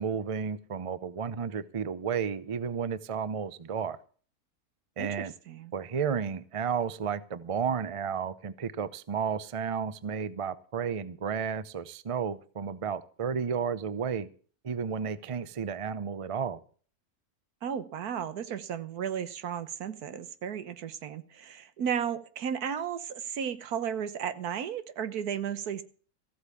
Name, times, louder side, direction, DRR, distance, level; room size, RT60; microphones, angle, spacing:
voice 1, 0.0-4.0 5.0-5.3 5.7-14.3 14.6-16.6, right 6 dB, 45° right, 0.4 m, -32 dB
voice 2, 5.0-5.7 17.6-25.8, right 8 dB, 80° right, 1.5 m, -34 dB
14.5 x 8.2 x 7.0 m
omnidirectional pair, 1.6 m